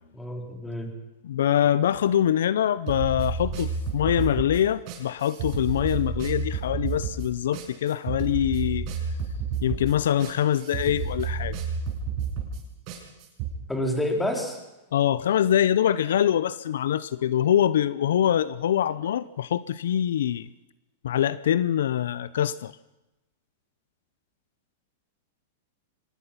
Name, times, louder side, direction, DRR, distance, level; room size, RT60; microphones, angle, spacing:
voice 1, 0.2-0.9 13.7-14.6, left 1 dB, 5° left, 2 dB, 4.1 m, -28 dB
voice 2, 1.2-8.9 9.6-11.6 14.9-20.5 21.0-22.7, left 10 dB, 80° left, 17 dB, 0.7 m, -24 dB
sound 1, 2.9-13.5, right 5 dB, 45° right, 6.6 m, -31 dB
24.0 x 19.5 x 5.9 m, 1.0 s
hypercardioid pair, 135°, 0 cm